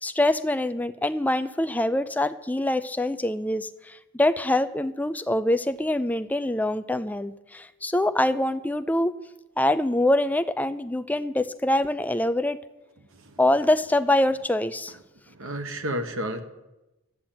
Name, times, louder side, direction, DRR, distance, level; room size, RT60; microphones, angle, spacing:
voice 1, 0.0-9.1 9.6-12.6 13.4-15.0, left 1 dB, 5° left, 11 dB, 0.4 m, -24 dB
voice 2, 15.3-16.4, equal, 60° right, 7 dB, 1.2 m, -32 dB
12.5 x 8.9 x 8.9 m, 1.0 s
head